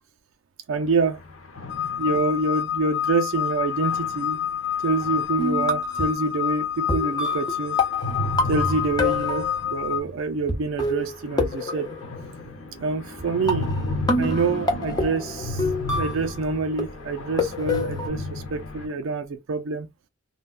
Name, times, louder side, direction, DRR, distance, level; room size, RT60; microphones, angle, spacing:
sound 1, 0.7-2.6 3.7-5.6 7.8-10.2 10.4-10.5 10.8-10.9 11.1-18.9, left 1 dB, 80° left, 1.1 m, -33 dB
voice 1, 0.7-1.2 2.0-4.4 4.8-7.8 8.1-8.2 8.5-12.0 12.8-13.8 14.2-15.6 15.9-19.9, right 3 dB, 70° right, 0.4 m, -26 dB
sound 2, 1.7-10.0, left 9 dB, 55° left, 0.3 m, -28 dB
sound 3, 5.4-6.2 6.9-9.8 10.5-10.6 10.8-12.5 13.2-13.3 13.5-16.4 16.8-18.1, left 2 dB, 20° left, 0.6 m, -27 dB
3.3 x 2.2 x 2.3 m
head